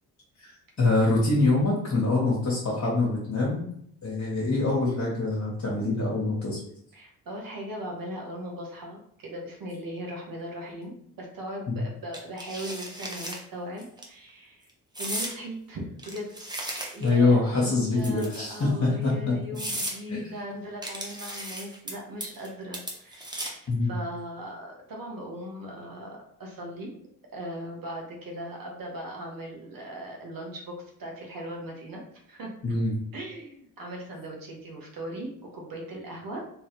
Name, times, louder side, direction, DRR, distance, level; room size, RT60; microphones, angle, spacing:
voice 1, 0.4-3.7 4.0-6.6 11.7-11.8 17.0-19.1 20.1-20.3 23.7-23.9 32.6-32.9, left 3 dB, 40° left, -5 dB, 1.4 m, -24 dB
voice 2, 6.9-14.7 15.0-26.9 27.3-32.5 33.1-36.4, equal, 55° right, -1 dB, 1.4 m, -39 dB
sound 1, 12.1-13.4 13.8-14.0 14.9-15.4 16.0-17.2 18.0-18.6 19.1-19.2 19.5-20.0 20.8-21.9 22.2-22.5 22.7-23.7, right 1 dB, 10° right, 1.0 m, -35 dB
3.3 x 3.1 x 3.2 m, 0.68 s
hypercardioid pair, 50°, 41 cm